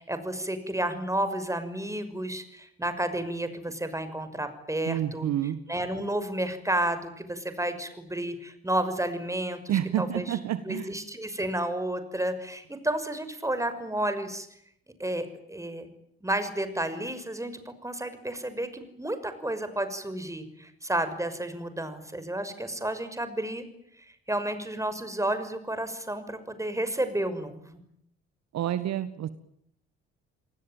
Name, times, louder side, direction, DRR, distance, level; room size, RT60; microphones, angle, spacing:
voice 1, 0.0-10.4 10.6-14.5 15.0-15.9 16.2-23.6 24.3-27.8, right 1 dB, 10° right, 10 dB, 6.1 m, -31 dB
voice 2, 4.9-5.6 9.7-10.9 28.5-29.3, right 11 dB, 60° right, 13 dB, 1.7 m, -29 dB
29.0 x 19.5 x 9.2 m, 0.73 s
hypercardioid pair, 45°, 31 cm